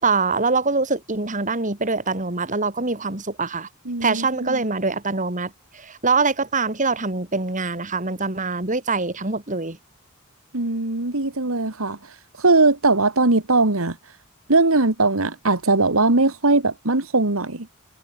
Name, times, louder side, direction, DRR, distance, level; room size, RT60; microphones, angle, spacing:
voice 1, 0.0-3.7 4.0-9.8, right 4 dB, 35° right, 3.1 m, -24 dB
voice 2, 3.9-4.6 10.5-12.0 12.4-14.0 14.5-17.7, right 3 dB, 75° right, 2.2 m, -20 dB
head